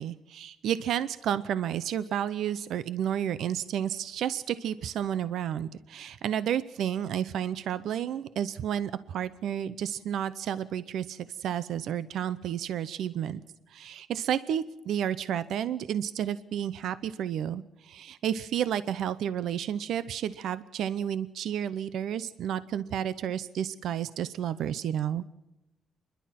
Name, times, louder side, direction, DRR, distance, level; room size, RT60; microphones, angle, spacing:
voice 1, 0.0-13.4 13.7-25.2, right 10 dB, 80° right, 15 dB, 0.7 m, -31 dB
29.5 x 11.5 x 7.5 m, 0.95 s
cardioid pair, 140°, 0 cm